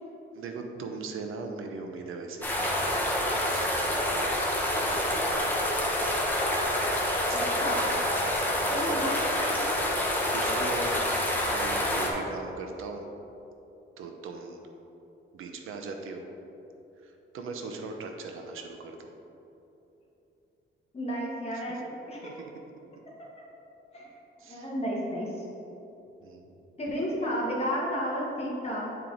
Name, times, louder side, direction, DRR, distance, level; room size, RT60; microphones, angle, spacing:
voice 1, 0.3-2.9 3.3-4.2 4.7-5.2 7.1-7.7 8.2-9.0 10.3-11.0 11.3-13.1 14.0-14.7 15.3-16.2 17.0-19.1 21.5-21.6 22.2-22.5 24.4-24.7 26.2-26.5, right 4 dB, 85° right, 4 dB, 0.8 m, -40 dB
sound 1, 2.4-12.1, left 1 dB, 10° left, 0.9 m, -27 dB
voice 2, 7.3-7.9 8.7-9.2 20.9-22.2 23.9-24.1 24.5-25.4 26.8-28.9, equal, 30° left, -4 dB, 1.5 m, -32 dB
8.8 x 4.5 x 3.9 m, 3.0 s
wide cardioid pair, 160°, 21 cm